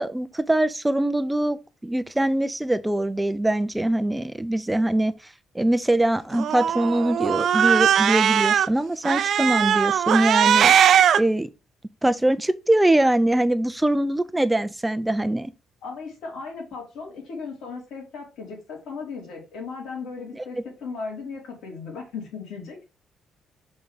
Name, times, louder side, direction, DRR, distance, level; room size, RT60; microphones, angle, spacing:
voice 1, 0.0-1.6 1.8-5.1 5.5-10.7 11.2-11.5 12.0-15.5, right 1 dB, 10° right, 0.6 m, -22 dB
Cat, 6.3-8.7 9.0-11.2, right 9 dB, 65° right, 0.4 m, -19 dB
voice 2, 15.8-22.8, left 4 dB, 85° left, 3.2 m, -36 dB
5.3 x 3.3 x 5.6 m
cardioid pair, 90°, 0 cm